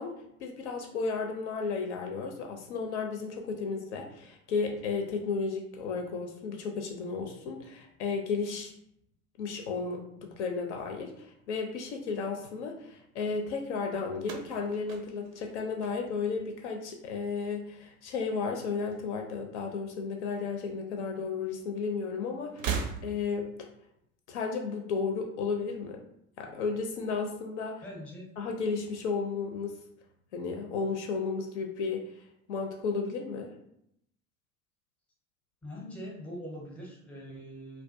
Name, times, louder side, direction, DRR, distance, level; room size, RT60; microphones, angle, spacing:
voice 1, 0.0-8.7 9.4-22.8 23.0-23.7 24.3-26.0 26.4-27.8 28.4-29.8 30.3-32.0 32.5-33.5, left 4 dB, 55° left, 2 dB, 0.5 m, -33 dB
sound 1, 14.2-16.5 16.8-17.4 18.5-19.5 19.7-19.9 21.0-21.1 22.5-23.5, right 6 dB, 70° right, 0.5 m, -38 dB
voice 2, 27.8-28.3 35.6-37.8, equal, 5° left, -2 dB, 0.5 m, -42 dB
2.3 x 2.1 x 2.5 m, 0.74 s
figure-of-eight pair, 70°, 41 cm